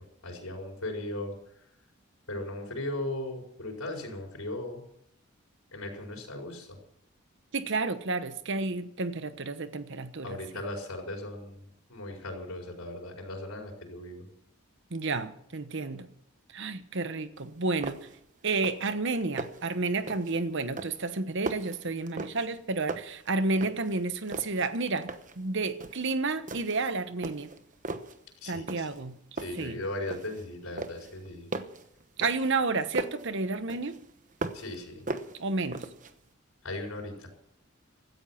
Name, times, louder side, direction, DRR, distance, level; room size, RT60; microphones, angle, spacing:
voice 1, 0.2-1.3 2.3-4.8 5.7-6.8 10.2-11.6 11.9-14.2 28.4-29.1 29.3-31.5 34.5-35.0 36.6-37.3, left 1 dB, 90° left, 5.0 m, -37 dB
voice 2, 7.5-10.4 14.9-16.1 16.5-18.1 18.4-25.1 25.4-27.5 28.5-29.2 29.6-29.8 32.2-34.0 35.4-35.8, right 3 dB, 60° right, 1.1 m, -31 dB
sound 1, 17.4-17.5 17.8-18.2 18.5-18.9 19.2-19.7 20.1-20.4 20.8-22.6 22.9-24.0 24.3-25.4 25.8-26.1 26.5-26.9 27.2-28.2 28.7-29.1 29.4-30.4 30.8-33.3 33.7-34.8 35.1-36.1, right 2 dB, 40° right, 1.0 m, -38 dB
16.5 x 13.5 x 5.8 m
head